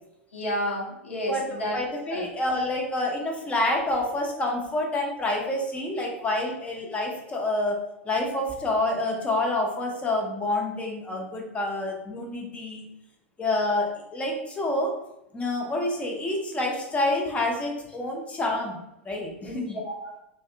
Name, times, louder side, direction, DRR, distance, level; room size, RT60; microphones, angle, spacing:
voice 1, 0.3-1.8 2.1-2.2 19.4-20.1, equal, 75° left, -2 dB, 0.8 m, -31 dB
voice 2, 1.7-7.8 8.0-12.8 13.4-14.9 15.3-18.8 19.0-19.8, left 2 dB, 20° left, 0 dB, 0.7 m, -28 dB
2.6 x 2.2 x 2.5 m, 0.84 s
figure-of-eight pair, 90°, 7 cm